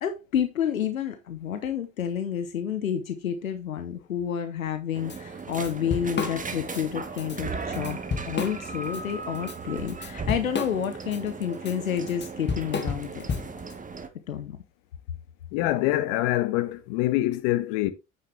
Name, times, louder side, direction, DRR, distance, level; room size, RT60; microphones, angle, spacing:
voice 1, 0.0-8.0 8.2-13.3 14.3-14.6, left 8 dB, 90° left, 0.8 m, -29 dB
sound 1, 4.9-14.1, right 4 dB, 20° right, 1.5 m, -37 dB
Drum kit / Drum, 5.1-5.2 5.5-6.8 7.2-7.4 7.7-9.0 9.3-13.7, left 5 dB, 25° left, 1.8 m, -32 dB
voice 2, 15.5-17.9, left 16 dB, 65° left, 1.2 m, -25 dB
9.2 x 6.7 x 3.2 m
hypercardioid pair, 65°, 40 cm